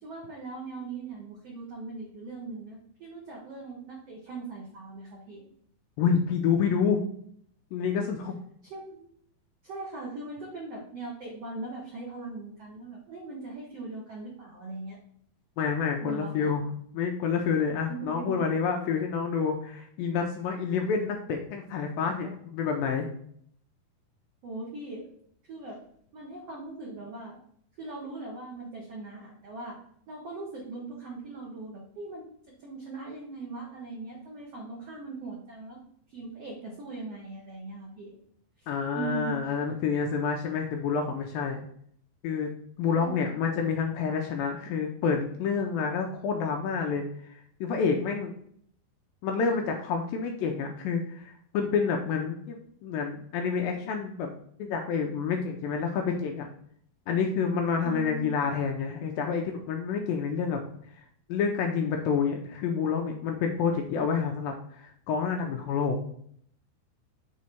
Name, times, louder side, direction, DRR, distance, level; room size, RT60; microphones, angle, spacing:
voice 1, 0.0-5.4 8.6-9.1 9.6-15.0 16.0-16.5 17.9-18.4 24.4-25.1 25.5-25.8 26.1-27.4 27.8-29.8 30.1-32.2 32.6-35.8 36.1-38.1 38.6-38.7 38.9-39.4 42.9-43.2 57.8-58.3, right 3 dB, 90° right, -3 dB, 1.3 m, -40 dB
voice 2, 6.0-7.0 7.7-8.3 15.6-16.7 16.9-23.1 38.7-41.6 42.2-42.5 42.8-47.3 47.6-48.3 49.2-54.3 54.6-56.5 57.1-60.6 61.0-61.1 61.3-66.0, left 6 dB, 80° left, 3 dB, 2.1 m, -28 dB
6.2 x 3.7 x 4.2 m, 0.65 s
omnidirectional pair, 4.6 m